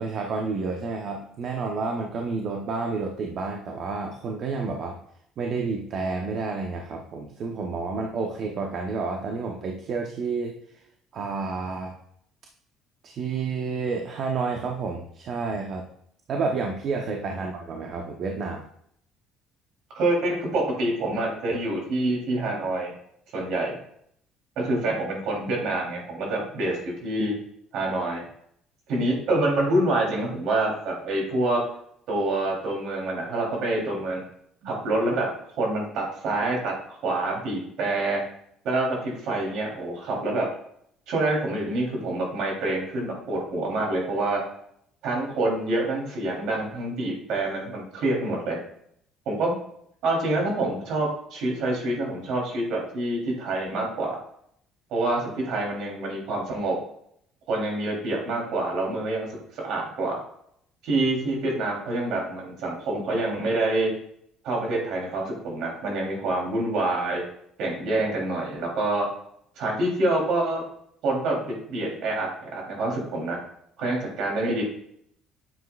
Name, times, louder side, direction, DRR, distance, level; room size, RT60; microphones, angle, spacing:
voice 1, 0.0-5.0 5.4-10.6 11.1-11.9 13.0-15.8 16.3-18.6, right 4 dB, 45° right, 2 dB, 0.9 m, -30 dB
voice 2, 19.9-22.9 23.3-23.8 24.6-27.4 27.7-28.2 28.9-31.6 32.1-34.2 34.6-35.3 35.6-36.7 37.0-38.2 38.6-40.5 41.1-44.4 45.0-48.6 49.2-49.6 50.0-54.2 54.9-56.8 57.5-59.3 59.5-60.2 60.8-63.9 64.4-67.2 67.6-69.1 69.6-70.6 71.0-73.4 73.8-74.6, right 2 dB, 65° right, -1 dB, 3.3 m, -26 dB
9.6 x 7.5 x 2.4 m, 0.70 s
cardioid pair, 145°, 0 cm